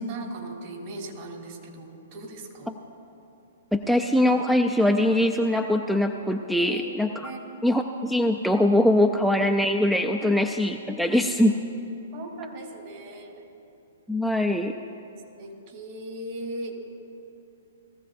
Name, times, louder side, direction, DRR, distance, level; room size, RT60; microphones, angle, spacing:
voice 1, 0.1-2.7 6.6-7.8 9.1-9.5 10.2-10.3 11.1-11.2 12.1-13.4 15.4-16.7, right 2 dB, 50° right, 0 dB, 3.0 m, -39 dB
voice 2, 3.7-7.3 7.6-11.5 14.1-14.7, left 1 dB, ahead, 5 dB, 0.4 m, -22 dB
20.0 x 14.5 x 2.6 m, 2.8 s
hypercardioid pair, 125°, 0 cm